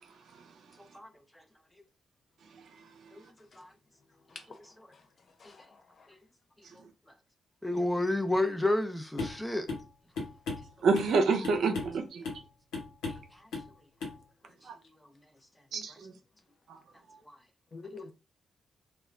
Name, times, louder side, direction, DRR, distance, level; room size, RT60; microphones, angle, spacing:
voice 1, 0.8-1.4 3.1-3.2 3.6-3.7 5.4-5.7 7.6-9.7 13.3-13.5 15.9-16.0 17.2-17.4, left 1 dB, 10° left, 0.6 m, -31 dB
voice 2, 4.3-5.1 5.4-6.2 17.7-18.1, left 4 dB, 55° left, 0.6 m, -49 dB
sound 1, 9.2-9.4 9.7-9.9 10.2-11.1 11.4-12.0 12.2-12.5 12.7-13.3 13.5-13.7 14.0-14.2, left 3 dB, 80° left, 1.0 m, -36 dB
voice 3, 10.8-12.2 14.7-14.8 15.7-16.1, right 4 dB, 70° right, 0.5 m, -27 dB
2.2 x 2.1 x 3.6 m
hypercardioid pair, 45°, 0 cm